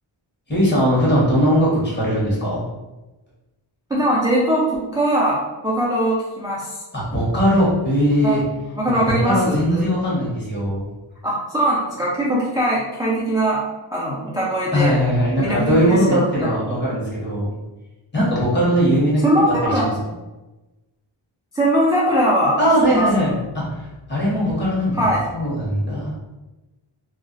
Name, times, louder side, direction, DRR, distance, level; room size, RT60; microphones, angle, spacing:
voice 1, 0.5-2.6 6.9-8.4 9.1-10.8 14.7-17.5 18.1-19.2 19.6-19.9 22.6-26.1, equal, 20° left, -7 dB, 1.0 m, -20 dB
voice 2, 3.9-6.8 8.2-8.4 8.8-9.9 11.2-13.6 13.9-15.0 15.4-16.5 19.2-19.8 21.5-22.6 22.9-23.1 24.9-25.2, right 1 dB, 10° right, -6 dB, 0.3 m, -21 dB
2.3 x 2.0 x 3.8 m, 1.1 s
wide cardioid pair, 160°, 49 cm